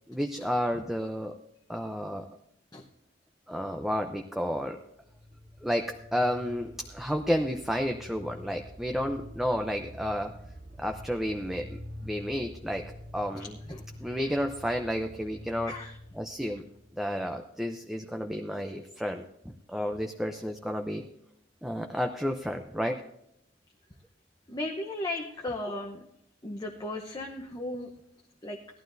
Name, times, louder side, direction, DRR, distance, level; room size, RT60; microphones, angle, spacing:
voice 1, 0.1-1.4 1.7-2.3 3.5-4.8 5.6-10.3 10.8-12.8 13.1-15.7 16.1-16.7 16.9-21.0 21.6-23.0 25.4-25.5, equal, ahead, 4 dB, 0.6 m, -31 dB
sound 1, 4.9-17.5, equal, 75° right, 3.2 m, -46 dB
voice 2, 24.5-26.0 26.4-27.9 28.4-28.6, left 1 dB, 20° left, 1 dB, 0.9 m, -35 dB
17.5 x 11.5 x 2.6 m, 0.79 s
head